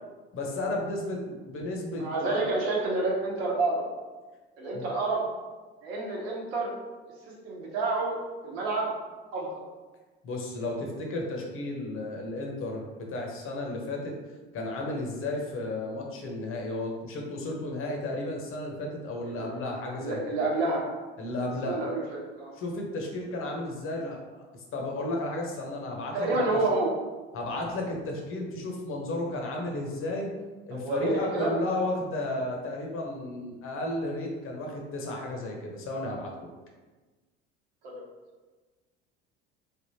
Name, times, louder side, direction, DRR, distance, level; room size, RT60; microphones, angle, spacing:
voice 1, 0.3-2.4 4.7-4.9 10.2-14.1 14.5-20.3 21.2-21.8 22.6-26.2 26.5-26.6 27.3-30.3 30.7-36.5, left 2 dB, 40° left, 0 dB, 0.9 m, -33 dB
voice 2, 2.0-3.8 4.6-5.2 5.8-6.7 7.4-8.2 8.4-8.9 9.3-9.6 19.3-19.5 19.9-20.9 21.6-22.5 26.1-26.9 30.7-31.5 37.8-38.0, right 2 dB, 75° right, -2 dB, 1.0 m, -29 dB
3.4 x 2.4 x 2.8 m, 1.3 s
hypercardioid pair, 70°, 32 cm